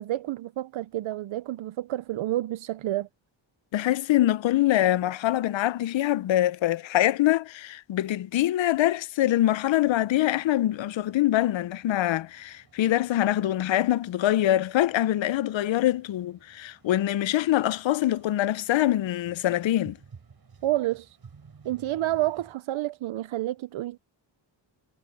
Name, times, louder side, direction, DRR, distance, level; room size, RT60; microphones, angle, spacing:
voice 1, 0.0-3.1 20.6-21.2 21.6-24.0, right 15 dB, 85° right, 0.7 m, -29 dB
voice 2, 3.7-20.0, left 13 dB, 75° left, 0.6 m, -24 dB
sound 1, 9.3-22.5, right 5 dB, 50° right, 4.6 m, -55 dB
wide cardioid pair, 100°, 46 cm